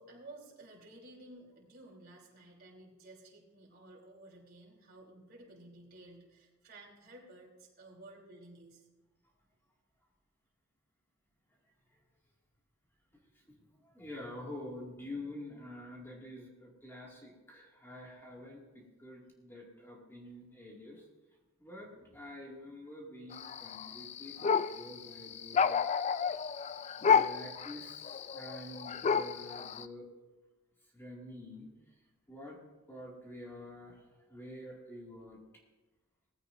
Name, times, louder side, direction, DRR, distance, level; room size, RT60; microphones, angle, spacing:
voice 1, 0.0-8.9, right 2 dB, 50° right, -2 dB, 3.4 m, -54 dB
voice 2, 13.8-21.0 21.6-25.7 27.0-30.1 30.9-31.7 32.3-34.0 34.3-35.4, left 1 dB, 10° left, -3 dB, 2.2 m, -47 dB
sound 1, 23.3-29.8, left 6 dB, 30° left, 0.3 m, -31 dB
18.5 x 15.0 x 2.6 m, 1.1 s
head